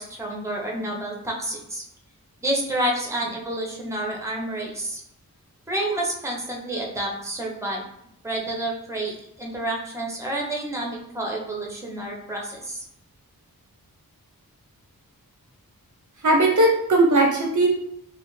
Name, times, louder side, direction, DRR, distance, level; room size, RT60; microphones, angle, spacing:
voice 1, 0.0-1.8 2.4-5.0 5.7-7.8 8.2-12.8, right 1 dB, 10° right, -1 dB, 0.7 m, -29 dB
voice 2, 16.2-17.7, right 2 dB, 55° right, 1 dB, 0.5 m, -18 dB
2.4 x 2.4 x 3.1 m, 0.74 s
wide cardioid pair, 55°, 36 cm